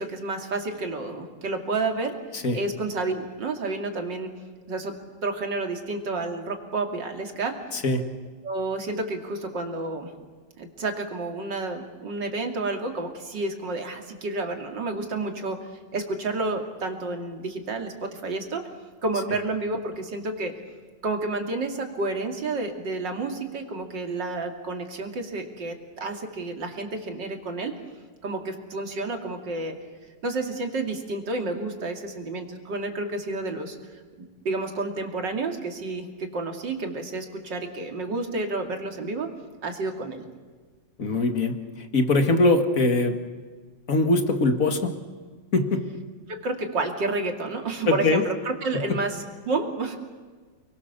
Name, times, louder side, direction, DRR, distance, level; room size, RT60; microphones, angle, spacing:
voice 1, 0.0-2.1 2.5-4.3 4.7-4.9 5.2-7.6 8.4-10.1 10.6-15.6 15.9-18.7 19.0-20.5 21.0-27.8 28.2-29.7 30.2-34.0 34.4-39.3 39.6-40.2 46.3-50.0, right 3 dB, 70° right, 4 dB, 3.2 m, -30 dB
voice 2, 41.0-41.5 41.9-43.2 43.9-44.9 45.5-45.9 47.9-48.2, left 2 dB, 45° left, 6 dB, 2.3 m, -22 dB
30.0 x 22.0 x 6.9 m, 1.5 s
omnidirectional pair, 2.0 m